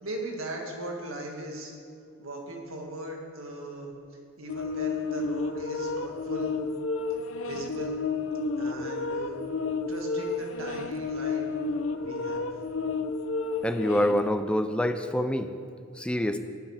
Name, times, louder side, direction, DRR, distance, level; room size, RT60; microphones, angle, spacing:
voice 1, 0.0-1.7 2.2-3.9 4.4-6.5 7.4-8.0 8.6-9.4 9.9-11.5 12.0-12.5, right 1 dB, 90° right, 0 dB, 1.9 m, -38 dB
sound 1, 4.5-14.3, left 4 dB, 70° left, 0.6 m, -31 dB
voice 2, 13.6-15.5 16.0-16.4, left 1 dB, 5° left, 8 dB, 0.4 m, -26 dB
11.5 x 9.2 x 5.0 m, 2.4 s
head